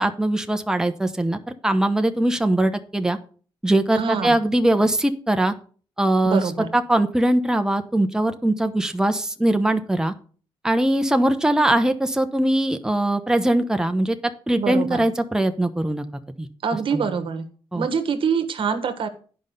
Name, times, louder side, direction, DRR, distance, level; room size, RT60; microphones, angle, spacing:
voice 1, 0.0-3.2 3.6-5.5 6.0-6.4 6.7-10.1 10.6-14.2 14.5-16.0 16.4-16.5 16.9-17.1 17.7-17.9, right 1 dB, 5° right, 8 dB, 0.9 m, -21 dB
voice 2, 3.9-4.4 6.2-6.7 14.6-15.0 16.6-17.5 17.7-19.1, right 6 dB, 60° right, 9 dB, 1.4 m, -25 dB
9.6 x 5.4 x 6.6 m, 0.42 s
cardioid pair, 75°, 10 cm